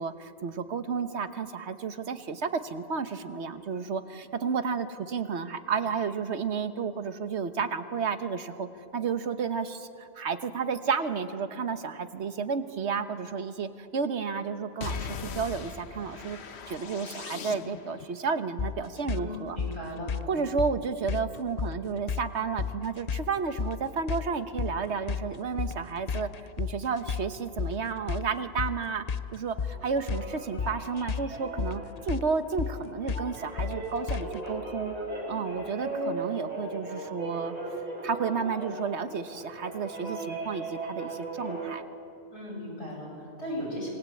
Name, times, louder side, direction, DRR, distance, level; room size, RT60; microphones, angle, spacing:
voice 1, 0.0-8.7 8.9-16.4 16.7-19.6 20.3-26.3 26.6-29.0 29.3-34.9 35.3-37.5 38.0-41.8, right 5 dB, 80° right, 10 dB, 1.4 m, -32 dB
sound 1, 14.8-18.1, left 5 dB, 75° left, 1.3 m, -39 dB
sound 2, 18.6-34.5, left 6 dB, 45° left, 0.6 m, -34 dB
voice 2, 19.1-20.1 42.3-43.9, equal, 90° left, -3 dB, 8.1 m, -37 dB
sound 3, 29.6-41.7, right 2 dB, 35° right, 6.6 m, -38 dB
26.0 x 20.5 x 8.6 m, 2.6 s
omnidirectional pair, 1.1 m